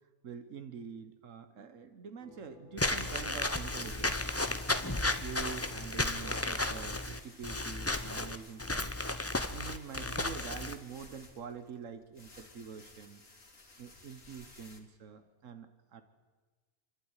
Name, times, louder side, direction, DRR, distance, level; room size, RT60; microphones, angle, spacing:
voice 1, 0.2-4.3 4.8-9.0 9.5-13.2 13.8-16.0, right 6 dB, 75° right, 9 dB, 1.5 m, -46 dB
sound 1, 2.2-5.2, right 1 dB, 40° right, 4.5 m, -60 dB
Walk footsteps / Squeak, 2.8-10.7, left 2 dB, 15° left, 0.7 m, -33 dB
sound 2, 3.8-14.8, left 2 dB, 85° left, 3.1 m, -54 dB
28.5 x 12.0 x 9.9 m, 1.4 s
omnidirectional pair, 1.3 m